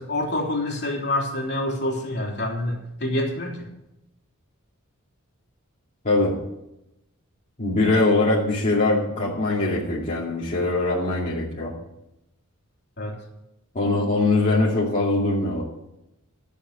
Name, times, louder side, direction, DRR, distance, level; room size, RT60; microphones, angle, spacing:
voice 1, 0.0-3.7 13.0-13.2, left 1 dB, 50° left, -1 dB, 3.3 m, -27 dB
voice 2, 7.6-11.7 13.7-15.6, left 2 dB, 35° left, -6 dB, 2.4 m, -22 dB
13.5 x 7.0 x 8.2 m, 0.88 s
head